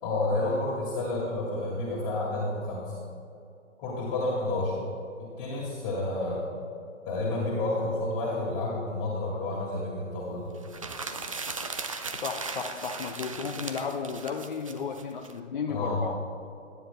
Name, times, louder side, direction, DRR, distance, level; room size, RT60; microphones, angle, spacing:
voice 1, 0.0-2.9 3.8-4.7 5.2-6.5 7.1-10.5 15.7-16.1, left 2 dB, 25° left, -6 dB, 2.3 m, -30 dB
sound 1, 10.6-15.3, right 4 dB, 30° right, 0.4 m, -37 dB
voice 2, 12.1-16.2, left 5 dB, 45° left, 3 dB, 0.5 m, -34 dB
21.5 x 9.9 x 2.2 m, 2.6 s
figure-of-eight pair, 130°, 37 cm